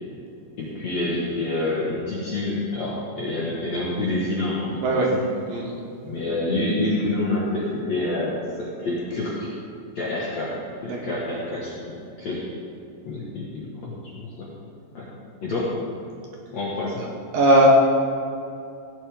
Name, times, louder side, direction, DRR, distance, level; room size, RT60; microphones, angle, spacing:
voice 1, 0.6-5.3 6.1-9.5 10.0-12.4 13.1-14.5 14.9-15.1 15.4-15.8 16.5-17.0, left 2 dB, 55° left, -6 dB, 2.1 m, -27 dB
voice 2, 17.3-17.7, right 1 dB, 65° right, -2 dB, 2.5 m, -18 dB
17.0 x 11.5 x 3.7 m, 2.5 s
omnidirectional pair, 5.1 m